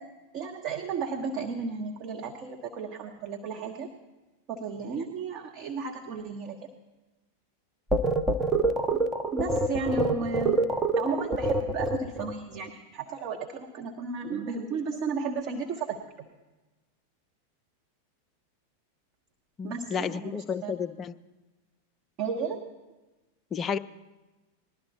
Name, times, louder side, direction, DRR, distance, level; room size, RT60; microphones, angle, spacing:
voice 1, 0.3-3.9 4.5-6.6 8.9-9.0 9.3-10.6 11.0-16.3 19.6-20.7 22.2-22.6, right 5 dB, 40° right, 3 dB, 1.0 m, -34 dB
sound 1, 7.9-12.3, right 2 dB, 15° right, 0.7 m, -26 dB
voice 2, 19.6-21.1 23.5-23.8, left 7 dB, 25° left, 13 dB, 0.4 m, -31 dB
20.0 x 12.0 x 2.8 m, 1.1 s
figure-of-eight pair, 90°, 0 cm